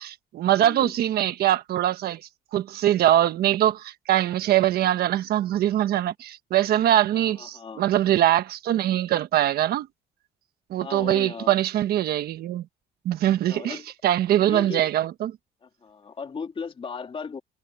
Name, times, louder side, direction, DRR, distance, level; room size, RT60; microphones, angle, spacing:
voice 1, 0.0-2.2 2.5-9.9 10.7-12.6 13.0-15.3, right 12 dB, 65° right, 1.3 m, -23 dB
voice 2, 0.6-0.9 7.1-7.8 10.8-11.5 13.4-13.9 14.4-14.9 15.6-17.4, left 5 dB, 30° left, 2.8 m, -36 dB
cardioid pair, 110°, 17 cm